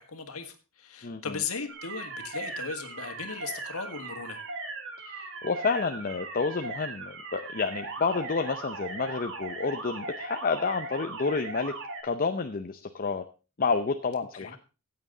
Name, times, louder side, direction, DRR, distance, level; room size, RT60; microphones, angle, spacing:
voice 1, 0.0-4.4 14.3-14.6, left 5 dB, 75° left, 5 dB, 1.8 m, -37 dB
voice 2, 1.0-1.3 5.0-11.7 12.0-13.2 13.6-14.6, left 4 dB, 40° left, 8 dB, 0.6 m, -29 dB
sound 1, 1.7-12.0, right 3 dB, 60° right, 2.4 m, -38 dB
14.5 x 8.8 x 3.9 m, 0.32 s
head